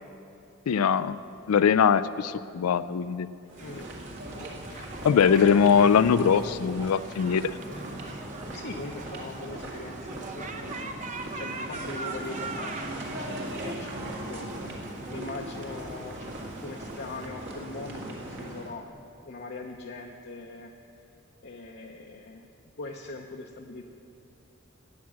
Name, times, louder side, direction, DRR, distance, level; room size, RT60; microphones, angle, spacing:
voice 1, 0.7-1.2 1.5-3.3 5.0-7.6, left 7 dB, 85° left, 14 dB, 0.4 m, -21 dB
sound 1, 3.5-18.7, right 1 dB, 55° right, 1.7 m, -39 dB
sound 2, 3.6-17.3, right 3 dB, 35° right, 0.7 m, -42 dB
voice 2, 8.5-10.9 11.4-13.0 13.3-18.9 19.2-20.7 21.4-22.5 22.8-23.8, left 3 dB, 50° left, 0 dB, 0.7 m, -41 dB
18.0 x 6.0 x 7.5 m, 2.6 s
head